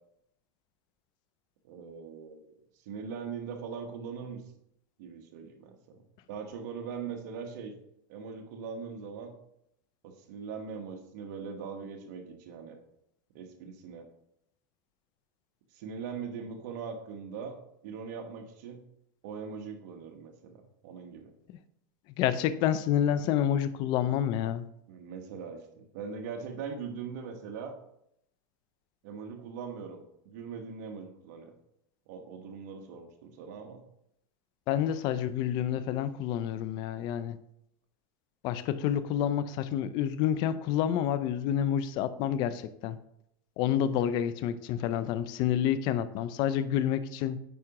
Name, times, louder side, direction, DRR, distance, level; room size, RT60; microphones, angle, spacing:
voice 1, 1.6-2.5 2.8-4.4 5.0-6.0 6.3-7.7 8.1-9.3 10.0-12.8 13.3-14.1 15.7-17.6 17.8-18.8 19.2-21.3 24.9-27.7 29.0-31.5 32.1-33.8, right 6 dB, 60° right, 4 dB, 1.2 m, -41 dB
voice 2, 22.2-24.6 34.7-37.4 38.4-43.0 43.6-47.4, left 10 dB, 45° left, 13 dB, 0.5 m, -28 dB
9.2 x 4.8 x 2.9 m, 0.76 s
supercardioid pair, 140°, 11 cm